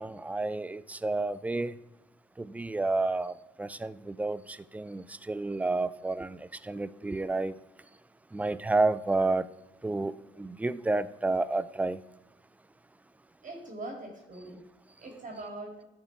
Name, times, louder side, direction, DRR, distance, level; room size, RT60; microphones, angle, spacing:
voice 1, 0.0-1.7 2.4-7.5 8.3-9.5 9.8-12.0, right 2 dB, 5° right, 0.3 m, -30 dB
voice 2, 13.4-14.6 15.0-15.8, right 2 dB, 40° right, 2.0 m, -42 dB
11.0 x 4.5 x 4.6 m
cardioid pair, 90°, 20 cm